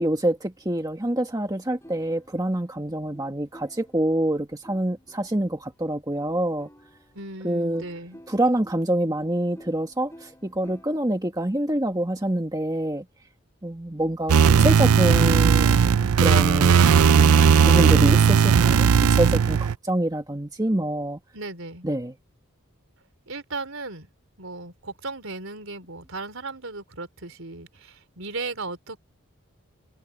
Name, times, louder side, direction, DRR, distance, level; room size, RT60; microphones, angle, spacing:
voice 1, 0.0-6.7 7.4-7.8 8.3-13.0 13.6-17.3 17.6-21.2 21.8-22.1, right 1 dB, 15° right, 1.5 m, -26 dB
sound 1, 1.8-5.7 6.2-11.0, equal, 15° left, 7.2 m, -52 dB
voice 2, 7.1-8.2 21.3-21.9 23.3-24.1 24.4-29.0, right 3 dB, 65° right, 4.1 m, -36 dB
sound 2, 14.3-19.8, right 6 dB, 85° right, 0.5 m, -17 dB
head